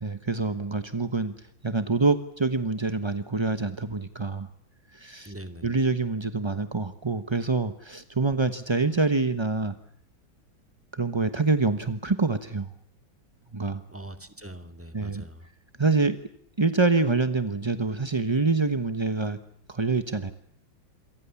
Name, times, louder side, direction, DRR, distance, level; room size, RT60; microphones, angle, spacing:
voice 1, 0.0-4.5 4.9-5.3 5.6-9.7 10.9-12.7 13.5-13.8 14.9-15.3 15.8-16.2 16.6-19.4 19.7-20.3, right 3 dB, 20° right, 10 dB, 0.7 m, -26 dB
voice 2, 5.2-5.7 13.9-15.5, right 1 dB, 5° right, 8 dB, 2.3 m, -42 dB
28.0 x 24.0 x 7.1 m, 0.72 s
omnidirectional pair, 2.1 m